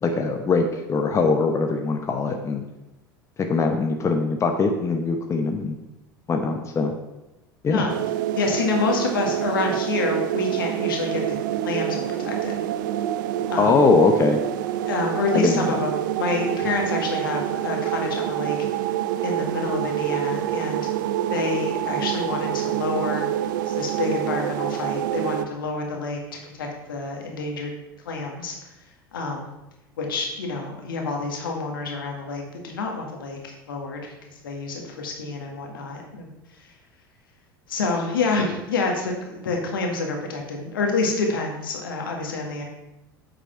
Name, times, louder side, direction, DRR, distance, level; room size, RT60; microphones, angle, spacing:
voice 1, 0.0-2.6 3.5-5.8 6.3-6.9 7.6-7.8 13.6-14.4 15.3-15.8, left 4 dB, 25° left, 4 dB, 1.0 m, -21 dB
voice 2, 7.7-8.0 8.3-11.4 11.6-12.6 13.5-13.8 14.9-18.6 19.2-20.9 21.3-23.3 23.7-27.7 28.1-28.6 29.1-29.5 30.0-34.1 34.4-36.3 37.7-42.6, left 3 dB, 70° left, 1 dB, 1.8 m, -28 dB
sound 1, 7.9-25.5, right 12 dB, 60° right, 0.4 m, -27 dB
8.0 x 6.7 x 4.5 m, 0.98 s
figure-of-eight pair, 75°, 12 cm